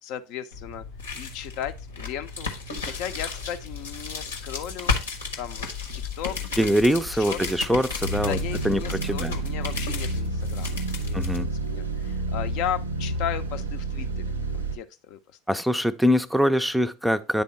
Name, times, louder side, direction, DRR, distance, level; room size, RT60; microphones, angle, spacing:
voice 1, 0.0-0.8 1.1-2.5 2.8-5.0 5.4-5.7 5.9-6.4 6.7-7.6 8.2-14.2 14.5-15.2 15.5-15.6, left 10 dB, 55° left, 0.6 m, -35 dB
sound 1, 0.5-11.4, left 4 dB, 80° left, 1.0 m, -34 dB
voice 2, 6.6-8.4 8.6-9.3 11.1-11.5 15.5-17.4, equal, ahead, 0.5 m, -23 dB
sound 2, 8.0-14.8, right 2 dB, 90° right, 0.6 m, -29 dB
9.2 x 3.5 x 4.0 m
figure-of-eight pair, 75°, 0 cm